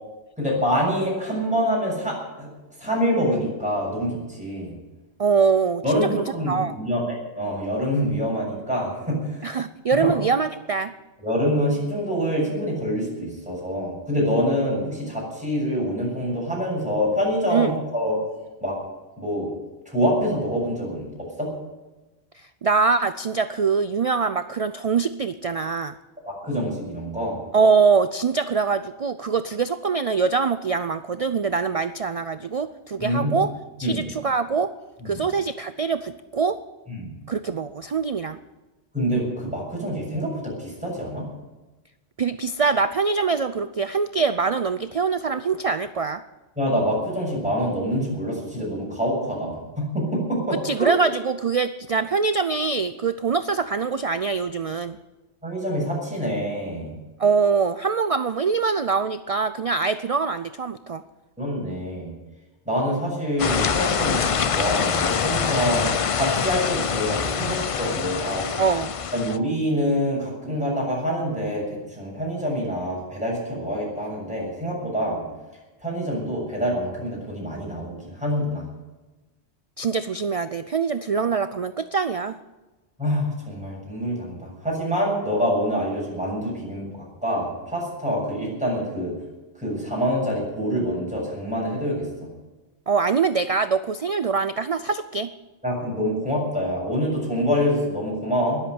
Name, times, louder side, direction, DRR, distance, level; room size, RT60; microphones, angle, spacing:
voice 1, 0.4-2.5 2.8-4.7 5.8-9.4 10.0-10.2 11.2-18.2 18.6-18.8 19.2-19.5 19.9-21.1 21.4-21.5 26.3-27.4 33.0-33.4 33.8-34.1 35.0-35.2 36.9-37.1 38.9-41.3 46.6-50.9 55.4-56.9 61.4-62.1 62.7-68.5 69.1-75.2 75.8-78.6 83.0-89.1 89.6-92.1 95.6-98.6, equal, 5° right, -4 dB, 7.2 m, -26 dB
voice 2, 5.2-6.7 9.4-10.9 17.5-17.8 22.6-25.9 27.5-33.5 33.8-34.7 35.0-36.6 37.3-38.4 42.2-46.2 50.6-55.0 57.2-61.0 68.6-68.9 79.8-82.4 92.9-95.3, right 5 dB, 45° right, 12 dB, 0.5 m, -23 dB
sound 1, 63.4-69.4, left 7 dB, 45° left, 0.4 m, -25 dB
20.5 x 8.1 x 8.0 m, 1.1 s
omnidirectional pair, 1.1 m